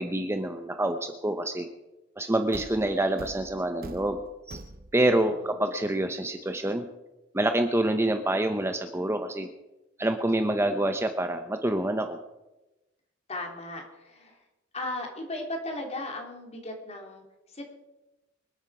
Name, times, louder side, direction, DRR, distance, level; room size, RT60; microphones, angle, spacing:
voice 1, 0.0-1.7 2.2-4.2 4.5-4.6 4.9-6.8 7.3-9.5 10.0-12.2, right 1 dB, 15° right, 7 dB, 0.8 m, -27 dB
Thump thud, 2.5-5.2, right 2 dB, 50° right, 0.9 m, -44 dB
voice 2, 5.2-5.5 13.3-14.4 14.7-17.7, left 1 dB, 35° left, 2 dB, 3.2 m, -37 dB
26.0 x 8.9 x 4.9 m, 1.0 s
head